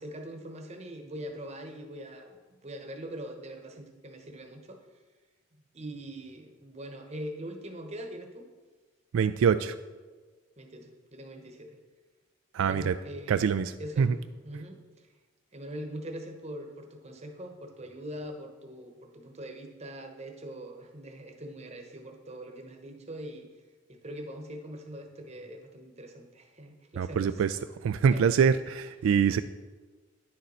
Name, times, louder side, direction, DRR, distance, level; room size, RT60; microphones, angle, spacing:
voice 1, 0.0-2.4 2.6-4.8 5.7-8.5 10.6-11.8 12.6-13.4 13.8-15.1 15.5-23.5 23.9-27.4 28.1-28.3, right 1 dB, 30° right, 4 dB, 0.9 m, -42 dB
voice 2, 9.1-9.7 12.5-12.9 13.3-13.7 14.0-14.1 27.0-27.6 27.8-29.4, right 6 dB, 80° right, 11 dB, 0.3 m, -24 dB
10.0 x 6.5 x 4.2 m, 1.3 s
head